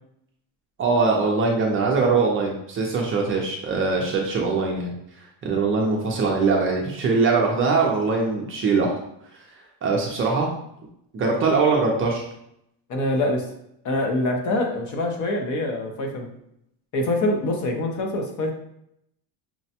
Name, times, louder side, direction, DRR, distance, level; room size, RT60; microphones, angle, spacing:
voice 1, 0.8-8.9 9.3-10.5 11.1-12.3, right 4 dB, 30° right, 0 dB, 0.5 m, -22 dB
voice 2, 12.9-13.4 13.8-16.3 16.9-18.5, left 1 dB, 45° left, 3 dB, 0.6 m, -24 dB
5.8 x 2.1 x 2.8 m, 0.77 s
cardioid pair, 165°, 44 cm